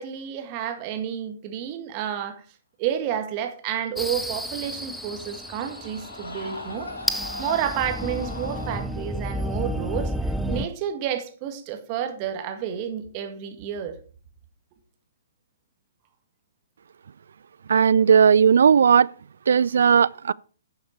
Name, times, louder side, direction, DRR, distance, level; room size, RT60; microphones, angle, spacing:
voice 1, 0.0-2.4 2.8-6.9 7.4-14.0, right 9 dB, 35° right, 1.9 m, -30 dB
sound 1, 4.0-10.7, equal, ahead, 0.6 m, -31 dB
Screaming, 4.4-8.9, left 2 dB, 75° left, 3.0 m, -39 dB
voice 2, 17.7-19.1 19.5-20.3, right 7 dB, 65° right, 0.3 m, -16 dB
10.5 x 7.2 x 4.6 m
figure-of-eight pair, 125°, 0 cm